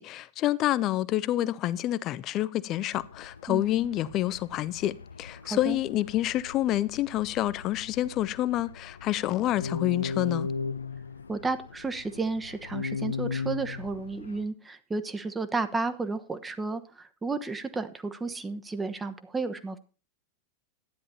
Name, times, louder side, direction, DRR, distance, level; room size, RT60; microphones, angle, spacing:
voice 1, 0.0-10.5, left 14 dB, 35° left, 0.7 m, -28 dB
sound 1, 2.9-14.4, left 5 dB, 75° left, 0.6 m, -38 dB
voice 2, 5.4-5.8 11.3-19.8, right 3 dB, 10° right, 1.1 m, -32 dB
12.5 x 9.9 x 4.2 m
figure-of-eight pair, 90°, 0 cm